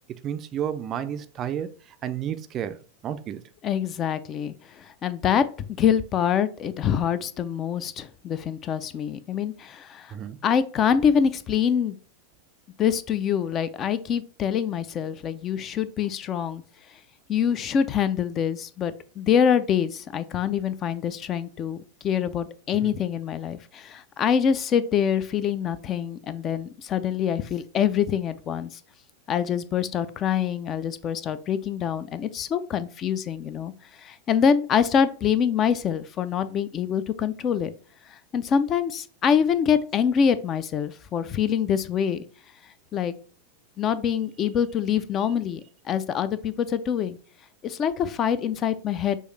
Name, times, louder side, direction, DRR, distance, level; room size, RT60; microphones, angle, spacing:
voice 1, 0.2-2.8 3.0-3.4 10.1-10.4 22.8-23.0, right 9 dB, 30° right, 0.4 m, -31 dB
voice 2, 3.6-5.5 5.8-10.1 10.4-12.0 12.8-16.6 17.3-28.7 29.3-33.7 34.0-37.7 38.1-42.2 42.9-43.1 43.8-47.2 47.6-49.2, left 8 dB, 30° left, 0.4 m, -25 dB
6.3 x 2.5 x 3.2 m
figure-of-eight pair, 90°, 0 cm